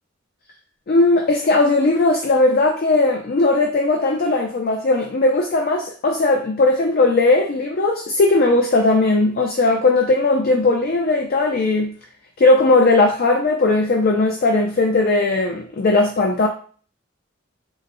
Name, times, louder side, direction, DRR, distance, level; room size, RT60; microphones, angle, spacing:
voice 1, 0.9-11.9 12.4-16.5, left 2 dB, 50° left, 2 dB, 0.4 m, -18 dB
3.8 x 2.0 x 2.6 m, 0.43 s
head